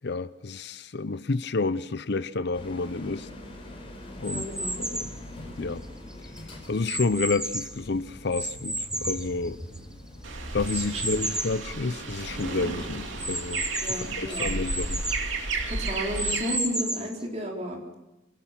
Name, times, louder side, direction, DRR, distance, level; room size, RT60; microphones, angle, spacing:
voice 1, 0.0-3.3 4.2-4.5 4.8-5.1 5.6-5.8 6.7-9.6 10.5-15.0, left 3 dB, 60° left, 0.7 m, -30 dB
sound 1, 2.5-11.4, left 1 dB, 30° left, 4.6 m, -42 dB
sound 2, 4.2-5.2 5.8-7.8 8.3-10.0 10.6-11.6 12.1-12.2 12.4-12.5 13.2-15.3 15.8-17.2, right 1 dB, 5° right, 0.9 m, -32 dB
voice 2, 4.2-4.9 10.7-11.0 13.8-14.5 15.7-18.0, equal, 35° right, 4.1 m, -33 dB
sound 3, 10.2-16.5, right 3 dB, 75° right, 2.9 m, -33 dB
27.5 x 17.5 x 6.0 m
head